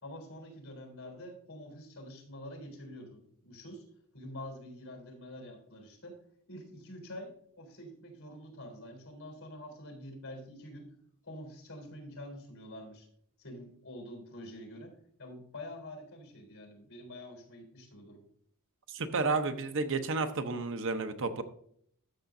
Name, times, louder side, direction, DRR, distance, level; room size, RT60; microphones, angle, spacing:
voice 1, 0.0-3.8 4.1-6.2 6.5-7.3 7.6-10.9 11.2-13.1 13.4-18.2, left 1 dB, 65° left, 2 dB, 3.7 m, -46 dB
voice 2, 18.9-21.4, right 3 dB, 60° right, 9 dB, 0.8 m, -31 dB
13.0 x 6.9 x 2.6 m, 0.64 s
head